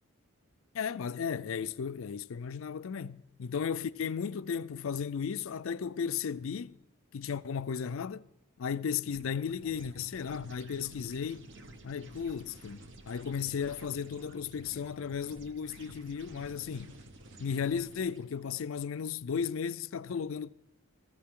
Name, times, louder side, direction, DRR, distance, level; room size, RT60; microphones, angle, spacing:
voice 1, 0.7-6.8 7.1-8.3 8.6-11.5 11.8-17.0 17.4-20.5, left 6 dB, 65° left, 0.4 m, -35 dB
sound 1, 9.0-18.5, right 2 dB, 55° right, 1.0 m, -52 dB
19.5 x 14.5 x 3.7 m
head